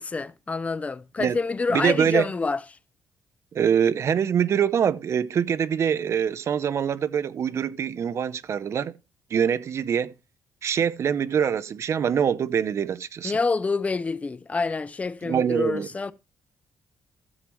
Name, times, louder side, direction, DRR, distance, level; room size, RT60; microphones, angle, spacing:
voice 1, 0.0-2.6 13.2-16.1, left 4 dB, 20° left, 0.5 m, -27 dB
voice 2, 1.7-2.3 3.5-8.9 9.3-10.1 10.6-13.4 15.2-15.9, right 8 dB, 50° right, 0.6 m, -24 dB
13.5 x 7.6 x 3.0 m
cardioid pair, 125°, 6 cm